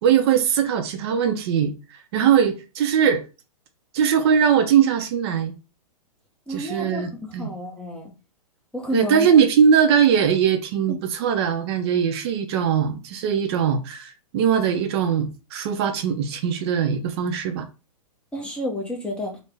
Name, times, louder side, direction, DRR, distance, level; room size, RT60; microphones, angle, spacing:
voice 1, 0.0-3.2 3.9-5.5 6.5-7.5 8.9-17.7, right 8 dB, 45° right, 0.5 m, -21 dB
voice 2, 6.5-8.1 8.7-9.3 10.9-11.0 18.3-19.4, left 1 dB, 5° left, 0.7 m, -30 dB
3.3 x 2.1 x 3.3 m
hypercardioid pair, 125°, 19 cm